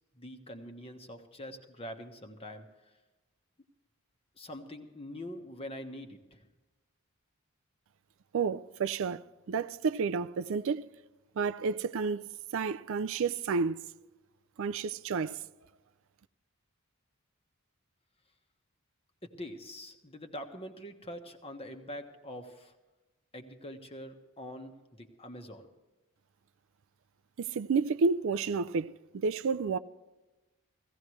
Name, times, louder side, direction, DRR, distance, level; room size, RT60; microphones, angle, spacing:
voice 1, 0.1-2.9 4.4-6.5 19.2-22.8 23.3-25.7, equal, 25° left, 1.3 m, -44 dB
voice 2, 8.3-9.2 9.5-10.9 11.4-13.8 14.6-15.4 27.4-29.8, right 5 dB, 65° right, 0.4 m, -30 dB
16.5 x 16.0 x 3.2 m
head